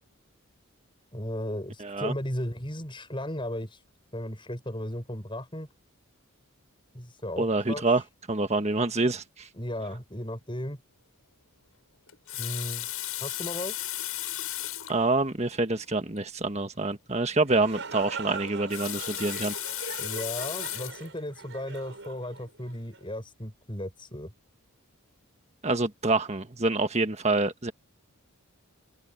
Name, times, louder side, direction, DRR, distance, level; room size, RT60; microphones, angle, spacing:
voice 1, 1.1-3.8 4.1-5.7 6.9-8.1 9.6-10.8 12.4-12.9 13.2-13.9 20.0-24.3, left 1 dB, 20° left, 7.3 m, -35 dB
voice 2, 1.8-2.1 7.4-8.0 8.3-9.5 14.9-19.5 25.6-27.7, right 2 dB, 30° right, 1.6 m, -26 dB
Water tap faucet, 12.1-15.0 15.8-15.9 16.2-16.3 18.5-21.1 21.7-22.0, left 14 dB, 75° left, 7.8 m, -35 dB
sound 1, 17.3-23.0, right 4 dB, 55° right, 8.0 m, -41 dB
open air
head